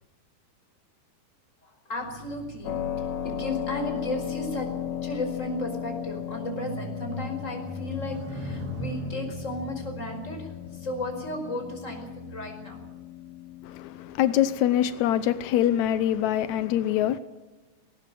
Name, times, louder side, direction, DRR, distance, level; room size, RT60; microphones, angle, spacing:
voice 1, 1.9-2.7 3.2-4.7 5.0-10.5 10.8-12.8, left 1 dB, 20° left, 5.2 m, -34 dB
sound 1, 1.9-13.6 14.3-14.6, equal, 90° right, 4.6 m, -41 dB
Keyboard (musical), 2.6-15.2, left 10 dB, 55° left, 2.8 m, -36 dB
voice 2, 13.6-17.2, left 11 dB, 85° left, 1.6 m, -24 dB
19.0 x 18.5 x 7.6 m
omnidirectional pair, 4.4 m